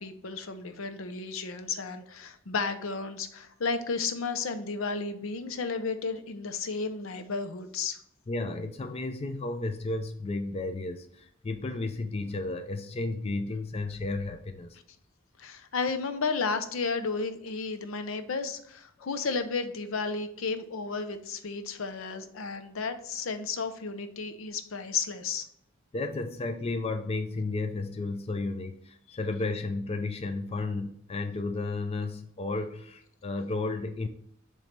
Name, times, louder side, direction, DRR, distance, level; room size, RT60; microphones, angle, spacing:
voice 1, 0.0-8.0 15.4-25.4 29.1-29.2, left 4 dB, 75° left, 9 dB, 0.7 m, -33 dB
voice 2, 8.3-14.8 25.9-34.1, left 2 dB, 30° left, 7 dB, 0.4 m, -33 dB
7.4 x 3.2 x 5.1 m, 0.69 s
head